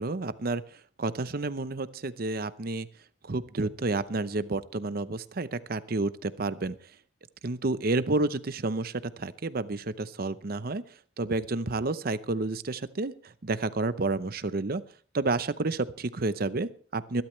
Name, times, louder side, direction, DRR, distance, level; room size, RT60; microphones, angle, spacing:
voice 1, 0.0-2.9 3.2-6.8 7.4-10.8 11.2-14.8 15.1-17.2, right 3 dB, 55° right, 14 dB, 0.7 m, -30 dB
22.5 x 12.0 x 3.2 m, 0.43 s
head